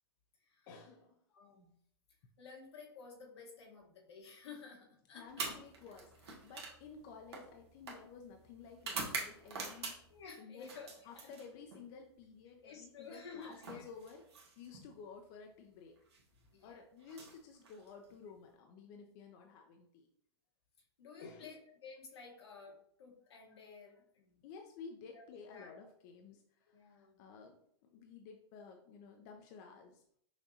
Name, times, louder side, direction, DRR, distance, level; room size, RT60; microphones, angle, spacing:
voice 1, 0.7-1.2 5.1-10.0 10.4-10.7 11.0-16.0 16.6-20.1 21.2-21.6 24.4-30.0, left 5 dB, 45° left, 3 dB, 0.6 m, -53 dB
voice 2, 1.3-1.7 2.4-5.5 10.1-11.3 12.6-13.9 16.5-16.8 21.0-24.4 25.1-25.7 26.7-27.2, left 5 dB, 80° left, 0 dB, 1.4 m, -53 dB
sound 1, 5.3-10.2 10.6-11.8 13.1-14.9 16.0-16.2 17.0-18.2, right 4 dB, 80° right, 1.3 m, -45 dB
5.8 x 2.6 x 2.8 m, 0.68 s
hypercardioid pair, 125°, 14 cm